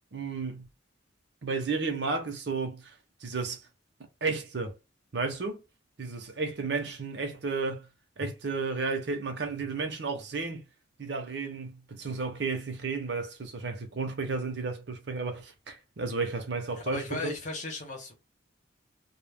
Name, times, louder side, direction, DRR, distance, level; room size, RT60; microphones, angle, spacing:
voice 1, 0.1-0.7 1.4-2.9 3.2-3.6 4.2-4.7 5.1-5.6 6.0-7.9 8.2-10.6 11.0-17.3, right 4 dB, 60° right, 0.6 m, -33 dB
voice 2, 16.7-18.1, left 2 dB, 40° left, 0.8 m, -36 dB
2.2 x 2.1 x 3.3 m
head